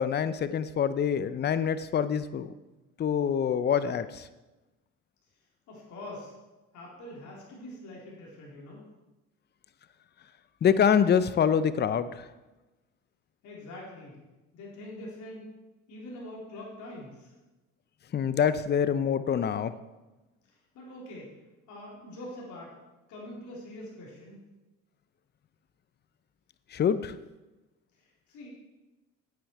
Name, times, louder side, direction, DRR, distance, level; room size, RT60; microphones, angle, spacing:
voice 1, 0.0-2.5 3.0-4.3 10.6-12.3 18.1-19.7 26.7-27.1, left 7 dB, 35° left, 13 dB, 0.6 m, -25 dB
voice 2, 5.7-6.3 6.7-8.9 13.4-14.2 14.5-15.5 15.9-17.3 20.5-21.4 21.7-22.8 23.1-24.4 28.0-28.5, left 1 dB, 70° left, -4 dB, 3.9 m, -44 dB
9.6 x 8.8 x 4.7 m, 1.1 s
supercardioid pair, 90°, 30 cm